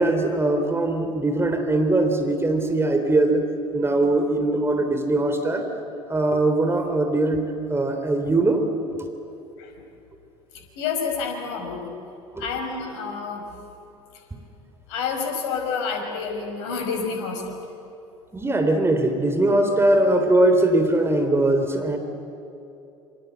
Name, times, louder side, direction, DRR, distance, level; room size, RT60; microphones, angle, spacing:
voice 1, 0.0-3.5 3.7-5.7 6.1-8.6 12.4-12.5 18.3-22.0, right 2 dB, 15° right, 6 dB, 3.6 m, -21 dB
voice 2, 10.8-11.9 12.4-13.4 14.9-17.6, left 5 dB, 65° left, 4 dB, 5.4 m, -29 dB
28.0 x 26.0 x 8.2 m, 2.8 s
figure-of-eight pair, 65°, 16 cm